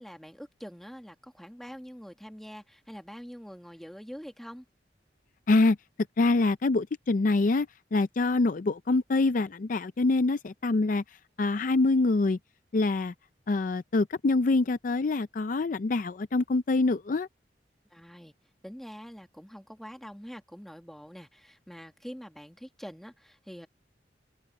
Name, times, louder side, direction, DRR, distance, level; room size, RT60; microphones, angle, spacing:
voice 1, 0.0-4.6 17.9-18.3 18.6-23.7, equal, ahead, 1.5 m, -45 dB
voice 2, 6.2-11.0 11.4-12.4 12.7-13.1 13.5-17.3, left 3 dB, 50° left, 0.4 m, -25 dB
open air
head